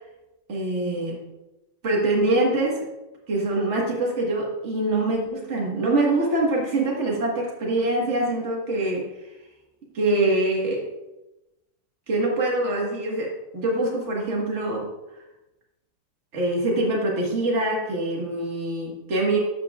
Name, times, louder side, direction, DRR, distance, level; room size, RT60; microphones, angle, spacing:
voice 1, 0.5-1.2 1.8-2.9 3.3-9.1 9.9-10.9 12.1-14.9 16.3-19.4, right 2 dB, 35° right, -2 dB, 1.7 m, -24 dB
12.0 x 5.7 x 2.4 m, 0.99 s
omnidirectional pair, 2.2 m